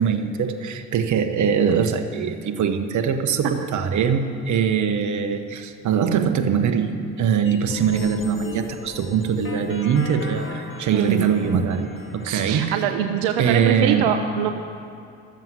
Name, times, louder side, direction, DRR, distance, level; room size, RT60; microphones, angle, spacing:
voice 1, 0.0-11.9 12.1-12.8 13.4-14.1, right 7 dB, 55° right, 6 dB, 1.2 m, -22 dB
sound 1, 7.5-12.5, left 4 dB, 35° left, 1.6 m, -38 dB
voice 2, 10.9-11.3 12.2-14.5, right 9 dB, 80° right, 6 dB, 0.8 m, -23 dB
13.0 x 7.5 x 7.5 m, 2.6 s
hypercardioid pair, 65°, 36 cm